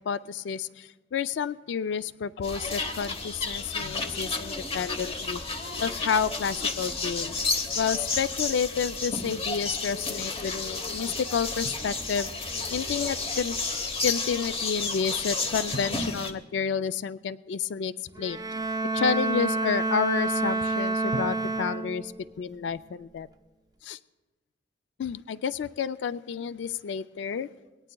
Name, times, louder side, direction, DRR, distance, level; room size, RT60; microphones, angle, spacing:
voice 1, 0.1-5.4 5.8-7.3 7.7-12.3 12.7-13.6 14.0-18.4 18.9-22.1 22.4-23.3 23.8-24.0 25.0-27.5, left 6 dB, 85° left, 14 dB, 0.3 m, -30 dB
sound 1, 2.4-16.3, left 3 dB, 35° left, 1.0 m, -31 dB
Drum, 11.7-12.7 15.7-17.6 21.1-23.1, right 1 dB, 60° right, 0.7 m, -43 dB
Bowed string instrument, 18.2-22.2, right 2 dB, 20° right, 0.4 m, -28 dB
21.5 x 18.0 x 2.2 m, 1.2 s
head